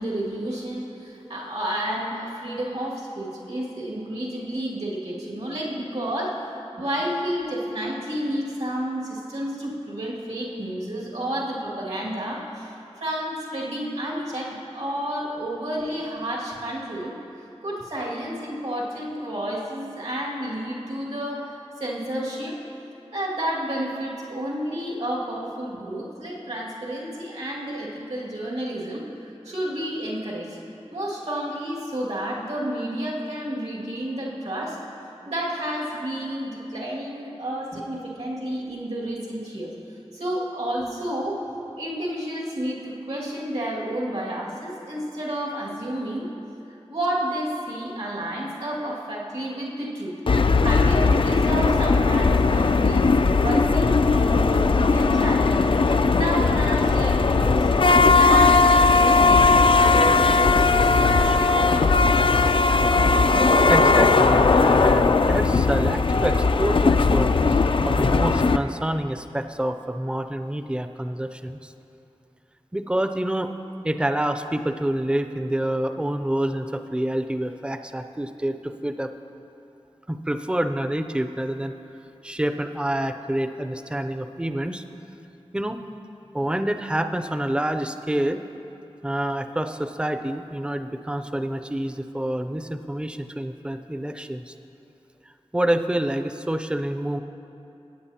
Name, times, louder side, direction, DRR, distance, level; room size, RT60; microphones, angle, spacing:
voice 1, 0.0-17.2 17.6-22.6 23.1-30.6 30.9-34.8 35.2-39.7 40.1-41.4 41.8-46.3 46.9-50.2 50.6-57.7 58.1-62.1, right 1 dB, 85° right, -6 dB, 2.2 m, -30 dB
sound 1, 50.3-68.6, left 3 dB, 55° left, 0.4 m, -18 dB
voice 2, 63.7-67.6 67.8-71.7 72.7-73.5 73.8-79.1 80.1-81.7 82.2-84.8 85.5-85.8 86.3-88.4 89.0-94.5 95.5-97.2, right 1 dB, 10° right, 8 dB, 0.5 m, -27 dB
18.0 x 8.7 x 2.9 m, 2.8 s
wide cardioid pair, 50°, 11 cm